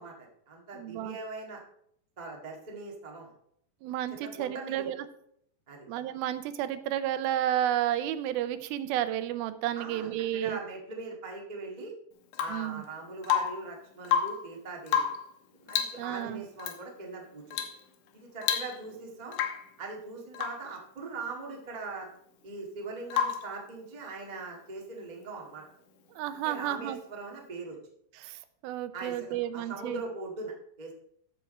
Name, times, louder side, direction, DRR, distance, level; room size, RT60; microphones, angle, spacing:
voice 1, 0.0-1.6 2.2-3.3 4.1-4.9 5.7-5.9 9.7-11.9 12.4-15.1 15.6-17.6 18.1-19.3 19.8-22.1 22.4-25.6 26.4-27.8 28.9-29.3 29.5-30.9, right 3 dB, 40° right, -1 dB, 0.6 m, -41 dB
voice 2, 0.7-1.2 3.8-5.0 5.9-10.6 12.5-12.8 16.0-16.4 26.1-27.0 28.2-30.0, right 12 dB, 90° right, 11 dB, 2.5 m, -32 dB
Rain / Water tap faucet / Drip, 12.3-12.7 13.2-13.7 14.0-14.5 14.9-15.3 15.7-16.0 16.6-16.8 17.5-17.8 18.1-18.2 18.4-19.0 19.3-19.7 20.3-20.7 23.1-23.5 25.4-25.5, left 8 dB, 70° left, 2.2 m, -30 dB
13.5 x 5.9 x 4.3 m, 0.70 s
omnidirectional pair, 4.2 m